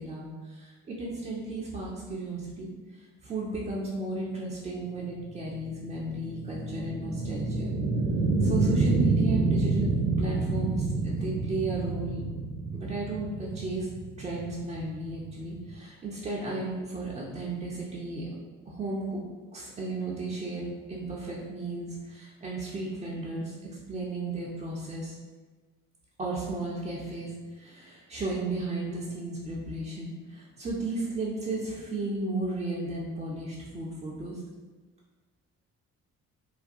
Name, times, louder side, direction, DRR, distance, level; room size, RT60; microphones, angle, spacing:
voice 1, 0.0-2.7 3.2-7.7 8.4-9.9 10.2-12.2 12.7-13.9 14.2-18.2 18.7-19.2 19.5-20.6 20.9-25.1 26.2-34.4, right 2 dB, 15° right, -5 dB, 0.3 m, -34 dB
sound 1, 5.0-15.7, right 3 dB, 60° right, 0.6 m, -28 dB
2.4 x 2.2 x 2.5 m, 1.3 s
figure-of-eight pair, 45°, 44 cm